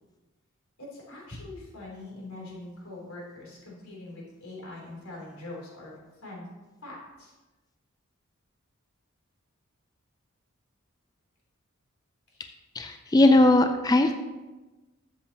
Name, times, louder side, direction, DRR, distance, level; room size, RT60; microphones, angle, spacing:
voice 1, 0.8-6.5 6.8-7.3 12.3-12.5, left 2 dB, 85° left, -3 dB, 3.3 m, -43 dB
voice 2, 12.8-14.1, left 2 dB, 20° left, 7 dB, 0.3 m, -19 dB
12.5 x 7.4 x 2.9 m, 1.2 s
head